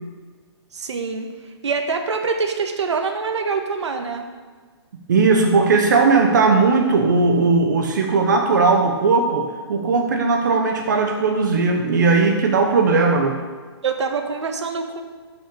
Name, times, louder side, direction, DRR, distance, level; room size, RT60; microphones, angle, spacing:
voice 1, 0.7-1.3 1.6-4.3 13.8-15.0, right 5 dB, 90° right, 5 dB, 1.5 m, -25 dB
voice 2, 5.1-13.4, right 4 dB, 45° right, 3 dB, 1.0 m, -18 dB
9.7 x 5.9 x 8.4 m, 1.5 s
hypercardioid pair, 175°, 14 cm